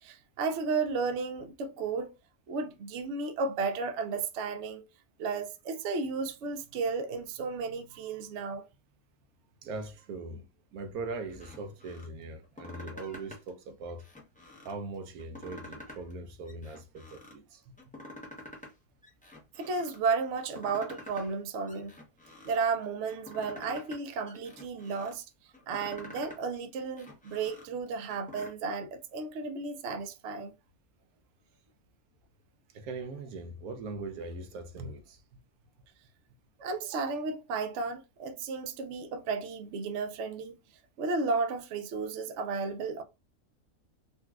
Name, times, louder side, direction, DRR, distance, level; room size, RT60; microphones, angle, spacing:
voice 1, 0.0-2.1 2.5-4.8 5.2-8.6 19.6-22.0 22.4-25.2 25.7-30.5 36.6-40.6 41.0-43.0, right 4 dB, 65° right, 0.8 m, -33 dB
voice 2, 9.6-14.1 14.6-17.7 32.7-35.2, right 3 dB, 85° right, 1.1 m, -40 dB
sound 1, 11.3-12.1 12.4-13.5 13.9-14.8 15.2-16.2 16.5-17.4 17.8-18.7 19.0-20.0 20.4-21.4 21.7-22.7 23.1-24.0 24.3-25.1 25.5-26.4 26.8-28.5, left 1 dB, 10° left, 0.6 m, -48 dB
3.9 x 2.3 x 2.3 m
omnidirectional pair, 1.5 m